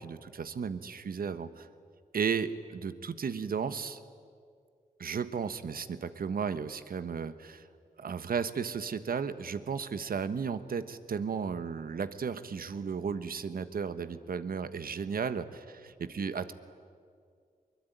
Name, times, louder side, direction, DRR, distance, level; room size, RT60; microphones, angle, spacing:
voice 1, 0.0-1.5 2.1-2.5 2.8-2.9 3.2-3.9 5.0-5.8 6.2-7.3 8.0-10.8 11.1-15.4 16.1-16.5, right 6 dB, 70° right, 12 dB, 1.3 m, -33 dB
22.5 x 21.0 x 9.3 m, 2.2 s
cardioid pair, 70°, 16 cm